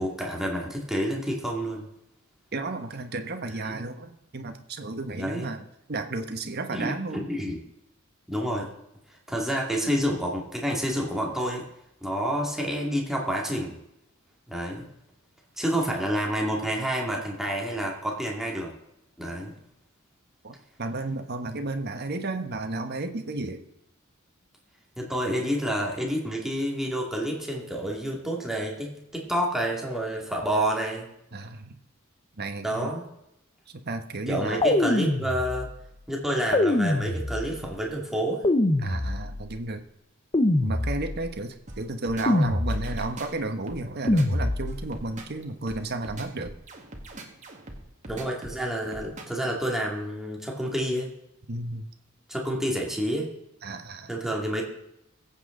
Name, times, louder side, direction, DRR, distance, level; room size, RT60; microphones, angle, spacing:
voice 1, 0.0-1.9 3.7-3.8 5.1-5.5 6.7-7.6 8.3-8.7 9.3-11.6 12.0-13.8 14.5-14.9 15.6-18.7 19.2-19.5 25.0-31.1 32.6-33.1 34.3-35.7 36.1-38.4 48.1-51.1 52.3-53.3 54.1-54.6, equal, ahead, -2 dB, 2.3 m, -29 dB
voice 2, 2.5-5.6 5.9-7.2 20.4-23.6 31.3-31.8 32.4-32.9 33.9-34.6 38.8-39.8 40.6-46.5 51.5-51.9 53.6-54.1, right 2 dB, 50° right, 6 dB, 1.3 m, -33 dB
sound 1, 34.6-35.8 36.5-37.7 38.4-39.6 40.3-41.4 42.3-43.2 44.1-45.0, left 1 dB, 25° left, 0.8 m, -25 dB
sound 2, 41.7-49.4, right 1 dB, 35° right, 1.9 m, -42 dB
21.5 x 8.5 x 3.9 m, 0.81 s
head